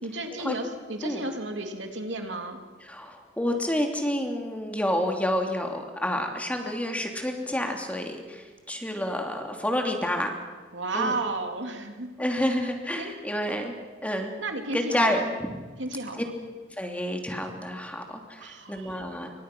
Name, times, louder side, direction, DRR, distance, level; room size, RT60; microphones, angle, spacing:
voice 1, 0.0-2.6 10.7-12.1 13.0-13.1 14.4-15.4 15.8-16.2 18.4-19.1, right 2 dB, 65° right, 5 dB, 3.0 m, -33 dB
voice 2, 2.9-10.3 10.9-11.1 12.2-13.7 14.0-14.3 14.7-15.5 16.2-16.3 16.8-19.3, left 1 dB, 5° left, 3 dB, 2.8 m, -29 dB
28.0 x 25.0 x 6.2 m, 1.4 s
head